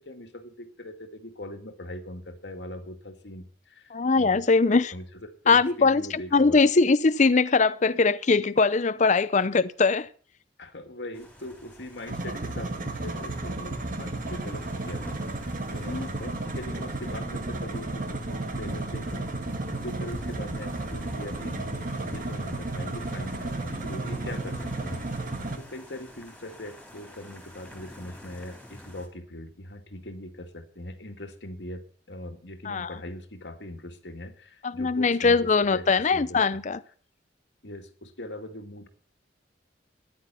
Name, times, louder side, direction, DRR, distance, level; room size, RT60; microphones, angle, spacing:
voice 1, 0.0-4.4 4.7-5.0 5.4-6.6 10.6-36.6 37.6-38.9, left 1 dB, 75° left, 2.1 m, -41 dB
voice 2, 3.9-4.9 5.5-10.1 15.8-16.1 32.6-32.9 34.6-36.8, left 4 dB, 45° left, 0.6 m, -21 dB
sound 1, 11.1-29.1, left 1 dB, 5° left, 3.6 m, -49 dB
sound 2, 12.1-25.6, right 2 dB, 50° right, 1.8 m, -33 dB
14.0 x 10.5 x 5.6 m
head